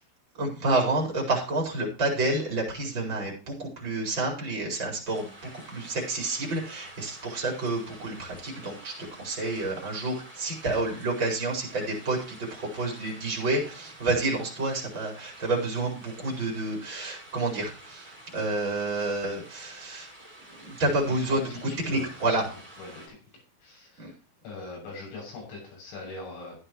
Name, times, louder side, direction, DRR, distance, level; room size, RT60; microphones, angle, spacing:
voice 1, 0.3-20.1 20.5-22.4 24.0-24.1, right 2 dB, 25° right, -3 dB, 4.9 m, -29 dB
sound 1, 5.0-23.1, right 1 dB, 10° right, 7.2 m, -49 dB
voice 2, 21.1-22.5 22.8-23.2 23.6-24.2 24.4-26.6, left 2 dB, 70° left, -2 dB, 9.7 m, -42 dB
14.5 x 9.9 x 3.1 m, 0.37 s
omnidirectional pair, 6.0 m